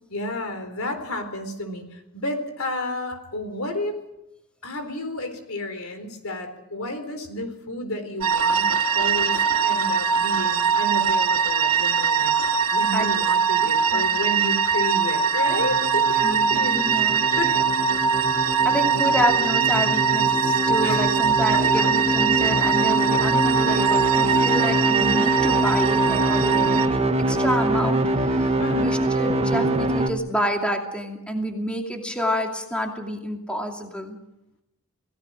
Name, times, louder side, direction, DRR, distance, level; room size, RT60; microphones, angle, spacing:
voice 1, 0.1-4.0 4.6-12.4 12.7-16.9 17.3-17.9 20.8-21.2 21.5-21.9 28.6-28.9, left 1 dB, 70° left, 7 dB, 4.0 m, -31 dB
sound 1, 8.2-26.9, right 7 dB, 75° right, 2.6 m, -22 dB
voice 2, 13.6-14.2 16.2-17.3 18.6-28.0 28.3-28.5 28.8-34.2, equal, 5° left, 2 dB, 2.6 m, -28 dB
sound 2, 15.5-30.1, right 1 dB, 30° right, 1.7 m, -24 dB
28.0 x 18.0 x 6.3 m, 0.87 s
head